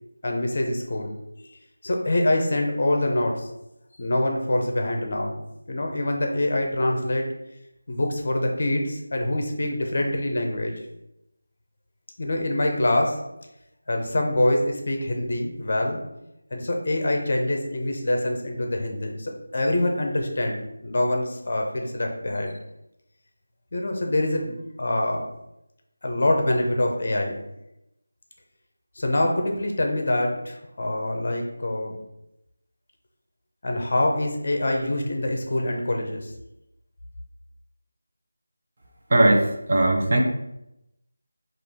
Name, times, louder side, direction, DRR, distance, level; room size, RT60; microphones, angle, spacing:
voice 1, 0.2-1.1 1.4-1.5 1.8-3.5 4.0-5.4 5.7-7.2 7.9-10.7 12.2-13.2 13.9-16.0 16.5-22.5 23.7-25.3 26.0-27.4 29.0-32.0 33.6-36.3, left 1 dB, 45° left, 2 dB, 0.7 m, -25 dB
voice 2, 39.1-40.2, right 1 dB, 40° right, 0 dB, 0.7 m, -19 dB
4.8 x 2.5 x 3.5 m, 0.87 s
figure-of-eight pair, 175°, 0 cm